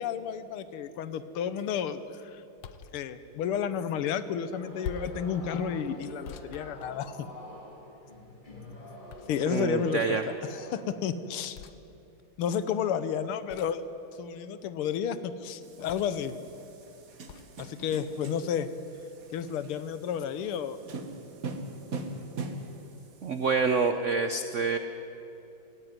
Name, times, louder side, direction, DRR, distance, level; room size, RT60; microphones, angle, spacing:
voice 1, 0.0-2.4 2.9-7.3 9.3-11.6 12.4-13.8 14.2-16.3 17.6-18.7 19.3-20.8, left 8 dB, 85° left, 13 dB, 1.8 m, -31 dB
sound 1, 2.6-3.0 4.8-5.2 6.2-7.4 9.1-9.7 11.5-11.8 13.5-13.9 15.9-16.3 17.3-17.5, left 7 dB, 65° left, 1.1 m, -43 dB
sound 2, 4.5-10.8, left 1 dB, 20° left, 3.6 m, -45 dB
voice 2, 9.4-10.2 23.2-24.8, right 4 dB, 75° right, 9 dB, 0.6 m, -27 dB
sound 3, 15.6-23.9, right 3 dB, 45° right, 1.6 m, -42 dB
18.0 x 16.0 x 9.4 m, 2.9 s
omnidirectional pair, 2.4 m